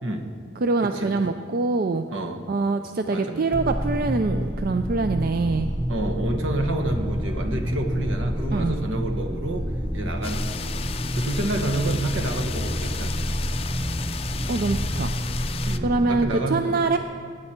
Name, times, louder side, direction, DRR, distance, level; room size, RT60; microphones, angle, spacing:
voice 1, 0.6-2.0 2.5-5.7 8.5-8.9 14.5-15.1 15.8-17.0, right 3 dB, 45° right, 8 dB, 0.4 m, -24 dB
voice 2, 2.1-2.4 3.1-3.5 5.9-10.8 11.1-13.3 15.6-16.8, right 1 dB, 70° right, 5 dB, 1.3 m, -29 dB
sound 1, 3.5-16.2, equal, 10° right, 0.7 m, -28 dB
sound 2, 10.2-15.8, left 7 dB, 30° left, 0.4 m, -35 dB
21.5 x 9.8 x 4.4 m, 2.2 s
head